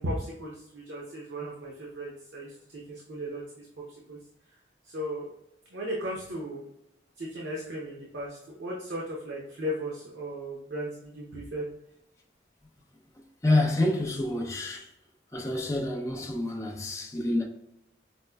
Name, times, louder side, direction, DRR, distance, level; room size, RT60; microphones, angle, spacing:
voice 1, 0.0-4.2 4.8-5.3 5.7-6.6 7.2-11.7, equal, 80° right, 0.7 m, -36 dB
voice 2, 13.4-14.9 15.3-17.4, left 2 dB, 15° left, 0.5 m, -27 dB
5.0 x 2.2 x 2.2 m
head